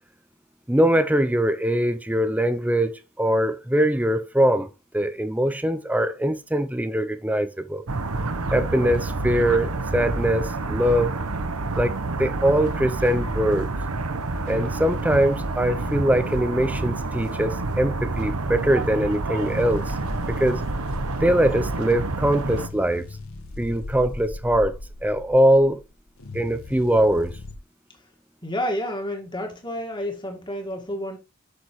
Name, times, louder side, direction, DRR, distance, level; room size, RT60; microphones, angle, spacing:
voice 1, 0.7-4.7 4.9-7.8 8.5-11.1 11.8-13.7 14.5-19.9 20.3-20.6 21.2-23.1 23.6-24.8 25.0-25.8 26.3-27.4, right 1 dB, 5° right, 0.7 m, -22 dB
sound 1, 7.9-22.7, right 2 dB, 90° right, 1.1 m, -28 dB
sound 2, 19.3-27.6, left 2 dB, 75° left, 1.4 m, -38 dB
voice 2, 28.4-31.2, left 1 dB, 20° left, 2.0 m, -30 dB
8.1 x 6.7 x 3.2 m
head